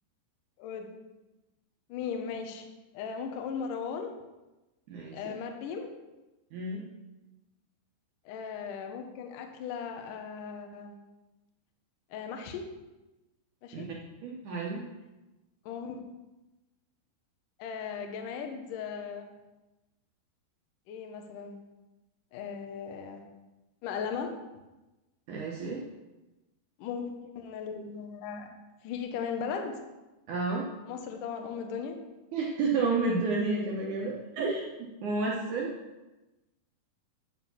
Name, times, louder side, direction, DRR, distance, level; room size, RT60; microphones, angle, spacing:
voice 1, 0.6-1.0 1.9-2.7 2.9-4.2 5.1-5.9 8.3-11.0 12.1-12.7 13.6-13.9 15.7-16.0 17.6-19.3 20.9-21.6 22.3-23.2 23.8-24.3 26.8-28.5 28.8-29.8 30.9-32.0, left 6 dB, 75° left, 4 dB, 2.0 m, -37 dB
voice 2, 4.9-5.3 6.5-6.8 13.7-13.8 14.2-14.8 25.3-25.8 30.3-30.7 32.3-35.7, right 3 dB, 75° right, -3 dB, 1.8 m, -31 dB
10.0 x 4.9 x 7.1 m, 1.1 s
omnidirectional pair, 5.0 m